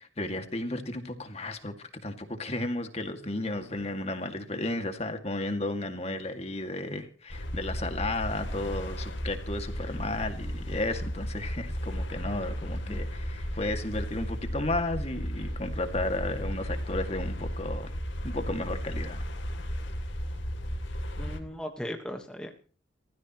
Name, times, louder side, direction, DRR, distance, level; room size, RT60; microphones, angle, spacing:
voice 1, 0.0-17.9 18.2-19.2, left 2 dB, 30° left, 6 dB, 2.2 m, -33 dB
sound 1, 7.3-21.4, equal, 75° left, 3.0 m, -34 dB
voice 2, 21.2-22.5, equal, 5° left, 3 dB, 1.4 m, -37 dB
29.5 x 15.0 x 3.1 m, 0.39 s
head